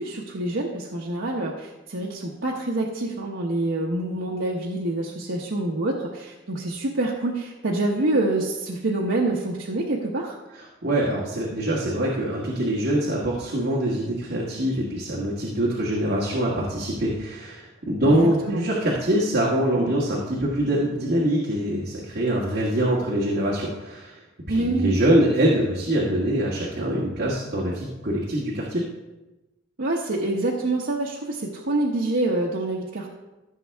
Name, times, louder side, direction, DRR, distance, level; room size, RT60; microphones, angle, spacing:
voice 1, 0.0-10.4 18.0-18.6 24.5-25.0 29.8-33.1, right 2 dB, 80° right, -3 dB, 1.0 m, -26 dB
voice 2, 10.8-24.2 24.5-28.8, right 1 dB, 60° right, -4 dB, 1.6 m, -24 dB
15.0 x 6.5 x 3.5 m, 1.1 s
head